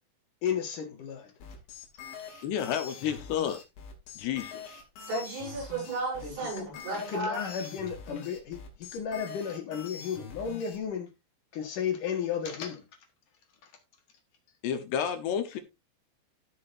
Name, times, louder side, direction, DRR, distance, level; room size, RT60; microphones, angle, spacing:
voice 1, 0.4-1.3 6.2-6.6 6.9-11.1 11.5-12.9 13.6-13.7, left 7 dB, 55° left, 2.6 m, -34 dB
sound 1, 1.4-10.8, left 6 dB, 90° left, 5.2 m, -44 dB
voice 2, 2.4-3.6 4.2-4.8 14.6-15.6, left 9 dB, 75° left, 2.9 m, -31 dB
voice 3, 5.0-7.4, right 2 dB, 75° right, 9.5 m, -34 dB
17.0 x 6.3 x 2.6 m
omnidirectional pair, 5.3 m